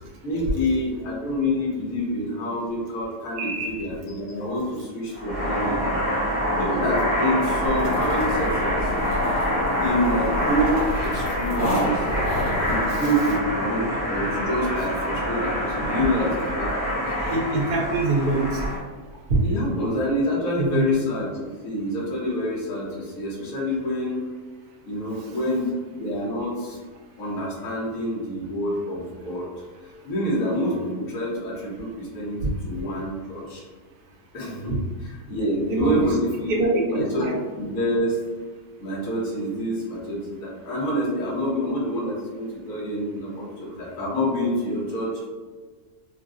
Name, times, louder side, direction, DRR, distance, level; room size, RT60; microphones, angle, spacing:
voice 1, 0.2-6.0 6.6-8.9 9.8-12.1 12.7-17.0 19.4-21.3 21.6-24.2 24.9-25.7 26.0-26.8 27.2-29.5 30.0-33.6 34.3-37.3 37.6-38.2 38.8-45.3, equal, 60° left, -5 dB, 1.3 m, -27 dB
voice 2, 3.4-3.8 12.9-13.0 17.3-18.6 20.6-20.8 32.4-32.5 35.7-36.1 36.5-37.3, right 2 dB, 75° right, -1 dB, 1.0 m, -24 dB
sound 1, 5.1-18.8, equal, 15° left, 0.5 m, -26 dB
sound 2, 7.6-12.8, left 1 dB, 85° left, 2.0 m, -30 dB
3.9 x 2.1 x 2.4 m, 1.4 s
omnidirectional pair, 1.8 m